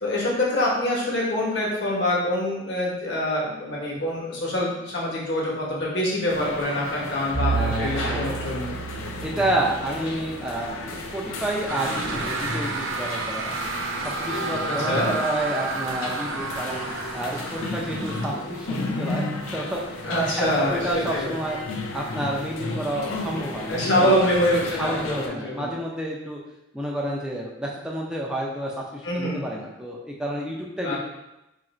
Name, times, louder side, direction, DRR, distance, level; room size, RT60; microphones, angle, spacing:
voice 1, 0.0-8.7 14.6-15.1 20.0-21.3 23.7-25.7 29.0-29.4 30.8-31.0, left 1 dB, 55° left, -4 dB, 1.0 m, -25 dB
sound 1, 6.3-25.3, left 2 dB, 75° left, 0.5 m, -33 dB
Bowed string instrument, 7.3-11.5, right 5 dB, 35° right, 0.8 m, -32 dB
voice 2, 7.5-8.2 9.2-10.7 11.1-13.6 14.0-16.8 17.1-21.6 21.9-26.4 26.7-31.0, right 1 dB, 5° right, -3 dB, 0.4 m, -30 dB
sound 2, 11.7-18.4, right 3 dB, 70° right, 0.4 m, -31 dB
2.9 x 2.5 x 4.2 m, 0.92 s
head